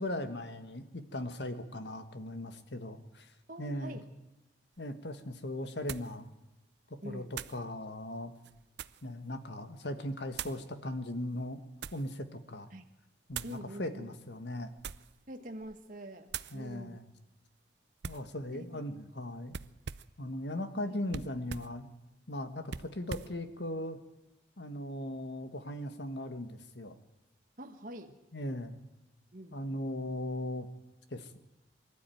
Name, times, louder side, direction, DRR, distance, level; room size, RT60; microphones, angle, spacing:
voice 1, 0.0-3.3 3.6-4.0 4.8-6.3 7.0-8.3 9.0-11.6 11.9-12.7 13.3-14.7 16.5-17.1 18.0-19.5 20.2-21.9 22.3-24.0 24.6-27.0 28.3-28.8 29.5-30.7 31.1-31.4, left 1 dB, 65° left, 9 dB, 1.6 m, -38 dB
voice 2, 3.5-4.0 7.0-7.4 12.7-12.8 13.4-14.1 15.3-17.0 18.5-18.8 20.9-21.0 27.6-28.1 29.3-29.6, right 1 dB, 45° right, 4 dB, 1.4 m, -45 dB
sound 1, 4.7-4.8 5.9-6.2 7.3-7.6 8.3-9.1 10.3-10.6 11.4-12.1 13.3-13.6 14.7-15.2 15.6-15.9 16.3-16.6 18.0-18.3 19.5-20.2 21.1-21.8 22.7-23.4, right 7 dB, 65° right, 0.6 m, -42 dB
24.0 x 12.5 x 9.3 m, 1.0 s
head